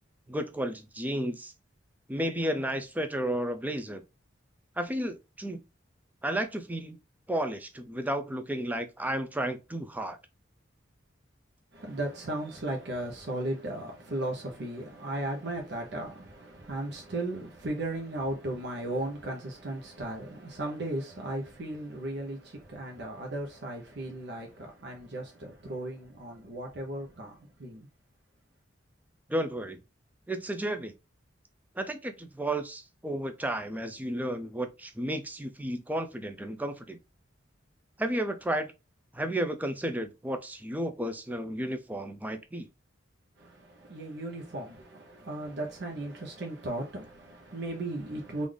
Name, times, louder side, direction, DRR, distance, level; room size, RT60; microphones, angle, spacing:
voice 1, 0.3-1.5 2.1-4.0 4.8-5.6 6.2-7.0 7.3-10.2 29.3-29.8 30.3-30.9 31.8-37.0 38.0-38.7 39.1-42.7, right 1 dB, 10° right, 0.4 m, -32 dB
voice 2, 11.7-27.9 43.4-48.5, right 1 dB, 60° right, 0.8 m, -36 dB
3.7 x 2.5 x 3.3 m
head